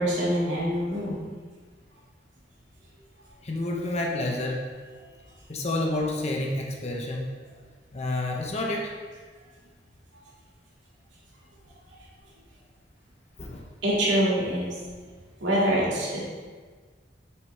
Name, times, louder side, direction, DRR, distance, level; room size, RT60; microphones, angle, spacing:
voice 1, 0.0-1.3 13.8-14.7 15.4-16.3, equal, 80° right, -6 dB, 2.2 m, -25 dB
voice 2, 3.4-4.6 5.5-7.6 7.9-8.9 13.4-13.7, left 2 dB, 35° left, 0 dB, 0.8 m, -29 dB
7.5 x 6.5 x 3.4 m, 1.5 s
head